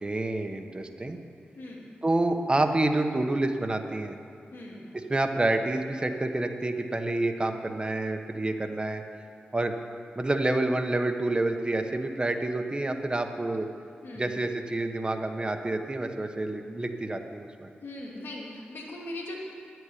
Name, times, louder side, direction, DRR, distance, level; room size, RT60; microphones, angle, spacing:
voice 1, 0.0-1.2 2.0-4.2 4.9-9.0 9.5-9.7 10.2-13.7 14.1-17.7, right 2 dB, 25° right, 5 dB, 1.0 m, -28 dB
voice 2, 4.5-4.8 14.0-14.2 17.8-19.4, left 1 dB, 75° left, -2 dB, 2.5 m, -39 dB
10.0 x 7.9 x 9.8 m, 2.4 s
wide cardioid pair, 85°, 4 cm